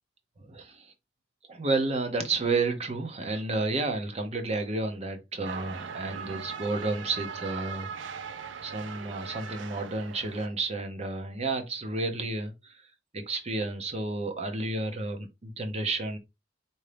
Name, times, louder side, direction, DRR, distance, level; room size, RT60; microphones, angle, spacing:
voice 1, 0.5-0.9 1.5-7.9 8.6-12.7 13.1-16.2, right 3 dB, 35° right, 0.8 m, -31 dB
sound 1, 5.4-10.5, right 6 dB, 85° right, 0.5 m, -40 dB
4.7 x 2.7 x 3.3 m
head